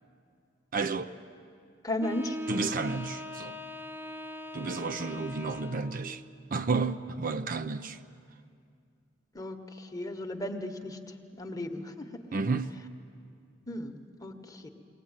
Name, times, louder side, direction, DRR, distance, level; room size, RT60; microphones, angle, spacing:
voice 1, 0.7-1.1 2.5-3.6 4.5-6.2 6.5-8.0 12.3-12.8, right 4 dB, 50° right, 0.6 m, -31 dB
voice 2, 1.8-2.4 9.3-12.1 13.7-14.7, left 1 dB, 20° left, 1.2 m, -36 dB
Wind instrument woodwind instrument, 2.0-6.1, left 1 dB, 10° right, 0.9 m, -40 dB
21.5 x 18.5 x 8.8 m
head